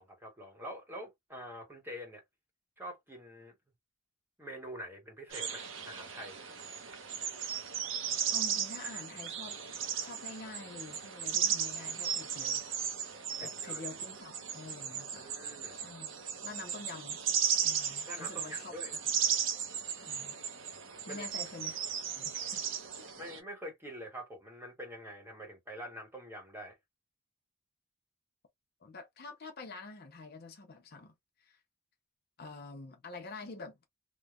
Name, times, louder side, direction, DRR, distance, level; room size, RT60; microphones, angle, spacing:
voice 1, 0.0-2.2 2.8-3.5 4.4-6.4 13.4-13.9 15.2-15.8 18.1-18.9 21.1-21.3 23.2-26.8, equal, 10° right, 1.0 m, -45 dB
sound 1, 5.3-23.4, right 8 dB, 65° right, 0.6 m, -36 dB
voice 2, 8.3-12.6 13.4-15.3 15.7-16.2 16.4-17.2 17.6-18.7 20.0-20.4 21.1-21.8 22.1-22.6 23.0-23.1 28.8-31.1 31.4-31.6 32.4-33.8, left 3 dB, 45° left, 0.6 m, -47 dB
3.0 x 2.1 x 2.3 m
head